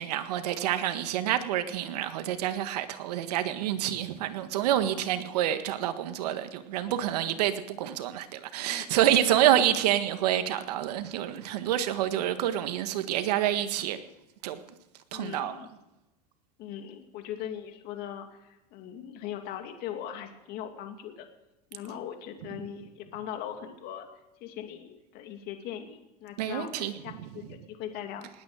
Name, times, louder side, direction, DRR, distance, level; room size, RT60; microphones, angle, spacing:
voice 1, 0.0-14.0 14.4-14.6 15.1-15.5 26.4-26.9, right 11 dB, 85° right, 1.7 m, -27 dB
voice 2, 15.1-15.7 16.6-21.3 21.7-24.1 24.4-28.3, left 10 dB, 50° left, 2.4 m, -40 dB
20.0 x 9.3 x 6.4 m
supercardioid pair, 130°, 20 cm